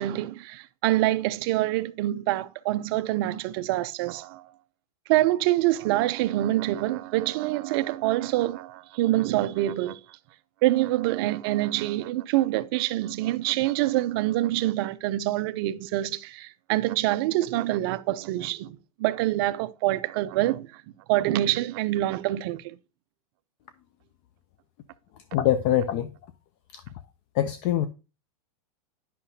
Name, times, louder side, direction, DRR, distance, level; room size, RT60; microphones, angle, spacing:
voice 1, 0.0-4.5 5.1-10.0 10.6-20.8 21.1-22.8, right 15 dB, 40° right, 0.4 m, -26 dB
voice 2, 25.3-26.1 26.7-26.8 27.3-27.9, left 11 dB, 30° left, 0.4 m, -23 dB
10.0 x 5.7 x 2.7 m
supercardioid pair, 160°, 19 cm